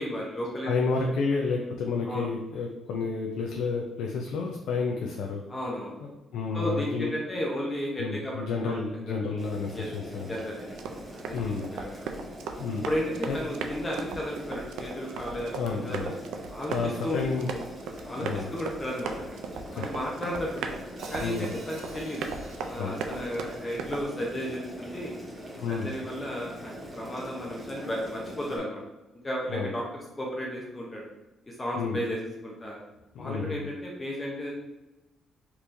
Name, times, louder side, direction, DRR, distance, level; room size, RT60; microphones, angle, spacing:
voice 1, 0.0-0.8 2.1-2.3 5.5-5.9 6.5-8.8 9.3-9.4 9.7-9.9 10.3-10.8 11.2-11.3 11.6-12.0 12.9-16.2 16.5-16.7 17.0-17.2 18.0-19.1 19.7-20.7 21.1-22.3 22.7-25.1 25.7-28.8 29.2-29.8 30.2-31.0 31.4-32.8 33.2-34.5, equal, 25° left, -3 dB, 0.7 m, -33 dB
voice 2, 0.6-5.4 6.0-7.1 8.0-10.3 11.3-11.7 12.6-12.9 13.3-13.4 15.5-16.1 16.7-17.5 18.2-18.5 19.7-19.9 21.2-21.5 22.8-23.0 25.6-25.9 29.5-29.7 31.8-32.0 33.1-33.7, left 4 dB, 85° left, 1 dB, 0.4 m, -30 dB
Boiling, 9.4-28.6, equal, 20° right, 1.0 m, -43 dB
Run, 10.7-24.0, right 5 dB, 85° right, 0.3 m, -38 dB
Hi-hat, 21.0-25.2, right 1 dB, 70° right, 1.5 m, -48 dB
3.5 x 2.9 x 2.6 m, 1.0 s
cardioid pair, 90°, 0 cm